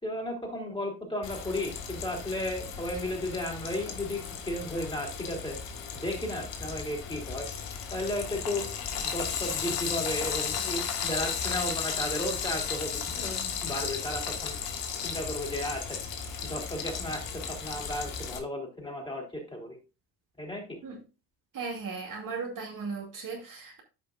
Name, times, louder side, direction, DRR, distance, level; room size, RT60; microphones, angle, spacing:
voice 1, 0.0-5.6 5.9-7.5 7.9-8.7 9.0-14.5 15.0-16.0 16.4-19.8 20.4-20.8, left 1 dB, 10° left, 3.7 m, -34 dB
Frying (food), 1.2-18.4, left 7 dB, 65° left, 1.6 m, -35 dB
voice 2, 21.5-23.8, right 4 dB, 40° right, 2.5 m, -37 dB
13.5 x 5.1 x 2.5 m
hypercardioid pair, 65°, 47 cm